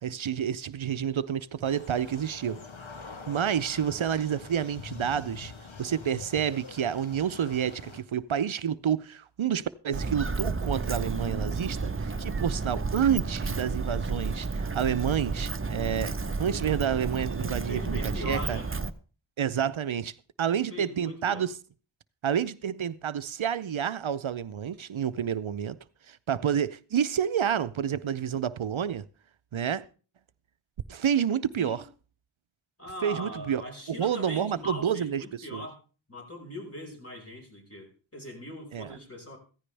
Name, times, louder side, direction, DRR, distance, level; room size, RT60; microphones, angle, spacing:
voice 1, 0.0-2.6 3.3-5.5 5.8-18.6 19.4-21.5 22.2-25.8 26.1-29.1 29.5-29.8 30.9-31.8 33.0-35.2 35.5-35.7 38.7-38.9, right 8 dB, 75° right, 0.6 m, -29 dB
sound 1, 1.6-8.0, left 4 dB, 75° left, 1.4 m, -44 dB
Walk footsteps, 9.9-18.9, right 4 dB, 25° right, 0.8 m, -31 dB
voice 2, 17.7-18.7 20.7-21.4 31.6-31.8 32.8-35.8 36.1-39.4, left 1 dB, 30° left, 5.0 m, -41 dB
15.0 x 15.0 x 3.4 m
wide cardioid pair, 50°, 48 cm